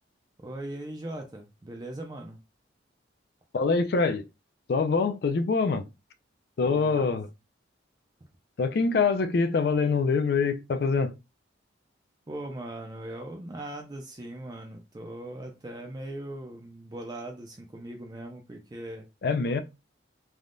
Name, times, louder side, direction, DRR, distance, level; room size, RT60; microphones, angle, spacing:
voice 1, 0.4-2.4 6.6-7.1 12.3-19.1, right 1 dB, 20° right, 0.4 m, -39 dB
voice 2, 3.5-4.2 4.7-5.9 6.6-7.3 8.6-11.1 19.2-19.6, left 4 dB, 55° left, 0.3 m, -24 dB
3.4 x 2.2 x 2.5 m
head